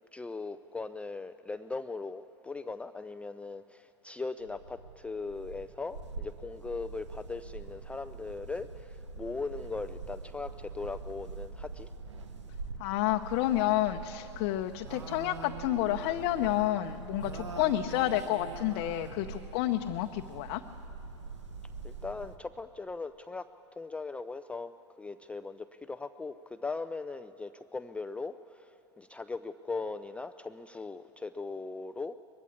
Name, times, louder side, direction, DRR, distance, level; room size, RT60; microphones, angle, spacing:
voice 1, 0.1-11.9 21.8-23.5 23.7-24.7 25.0-32.2, left 3 dB, 10° left, 10 dB, 0.4 m, -39 dB
sound 1, 4.4-22.4, right 4 dB, 90° right, 1.0 m, -44 dB
voice 2, 12.8-20.6, left 14 dB, 55° left, 5 dB, 0.7 m, -30 dB
21.0 x 14.5 x 8.5 m, 2.9 s
hypercardioid pair, 95°, 15 cm